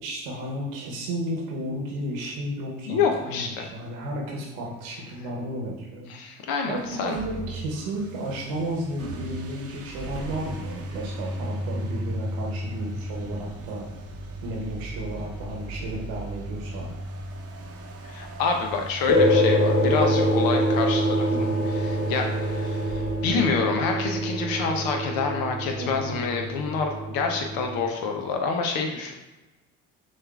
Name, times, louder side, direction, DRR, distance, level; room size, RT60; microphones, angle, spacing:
voice 1, 0.0-6.1 6.7-13.9 14.4-16.9 21.3-21.6 25.8-26.1, right 1 dB, 75° right, -1 dB, 1.1 m, -33 dB
voice 2, 2.9-3.7 6.1-7.2 18.0-21.5 21.8-29.1, left 5 dB, 75° left, 2 dB, 0.8 m, -27 dB
sound 1, 6.8-24.3, right 1 dB, 40° right, 0.7 m, -37 dB
sound 2, 19.1-27.8, equal, 50° left, 1.2 m, -25 dB
6.2 x 2.5 x 2.4 m, 1.1 s
hypercardioid pair, 65°, 36 cm